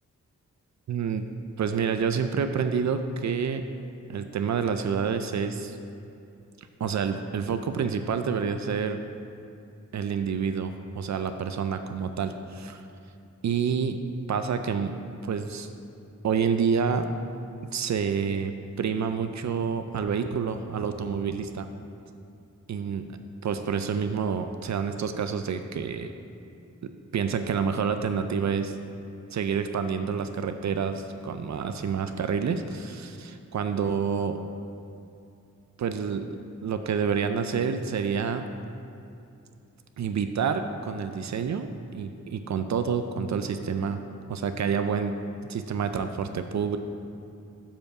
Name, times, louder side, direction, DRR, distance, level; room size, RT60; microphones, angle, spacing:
voice 1, 0.9-1.2 1.6-3.7 4.1-5.8 6.8-9.0 9.9-12.8 13.4-14.0 14.3-14.9 15.2-15.7 16.2-17.1 17.7-21.7 22.7-23.0 23.4-26.1 26.8-28.8 29.3-34.4 35.8-38.5 40.0-44.0 44.3-45.2 45.4-46.8, right 6 dB, 65° right, 8 dB, 0.4 m, -28 dB
7.0 x 5.2 x 4.7 m, 2.6 s
wide cardioid pair, 100°, 30 cm